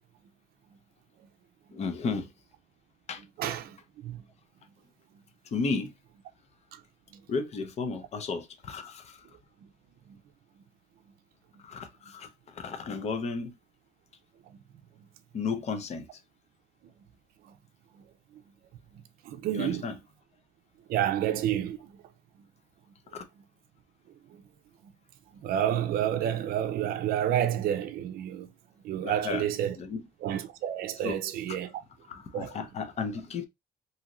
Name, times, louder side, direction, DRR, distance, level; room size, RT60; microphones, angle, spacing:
voice 1, 1.7-2.3 3.1-3.2 5.5-5.9 7.3-9.2 11.6-13.5 15.3-16.1 19.5-20.0 23.1-23.2 29.0-29.5 29.8-30.1 31.0-31.2 31.5-31.6 32.1-33.5, left 4 dB, 40° left, 0.6 m, -33 dB
voice 2, 3.4-3.8 4.0-4.2 19.3-19.8 20.9-21.8 25.4-28.5 28.8-29.8 30.2-31.7 32.3-32.5, right 11 dB, 60° right, 0.4 m, -29 dB
2.7 x 2.4 x 2.9 m
cardioid pair, 110°, 17 cm